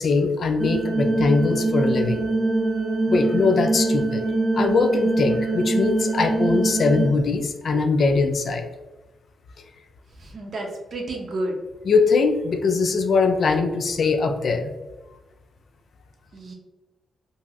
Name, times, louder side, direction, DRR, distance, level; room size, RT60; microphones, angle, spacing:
voice 1, 0.0-2.2 3.0-4.2 4.5-8.7 11.9-14.7, left 4 dB, 50° left, 7 dB, 0.3 m, -21 dB
sound 1, 0.6-7.1, right 2 dB, 10° right, 0.7 m, -23 dB
voice 2, 10.2-11.5 16.3-16.5, right 1 dB, 50° right, 1 dB, 0.6 m, -31 dB
3.0 x 2.7 x 2.4 m, 1.1 s
wide cardioid pair, 140°, 0 cm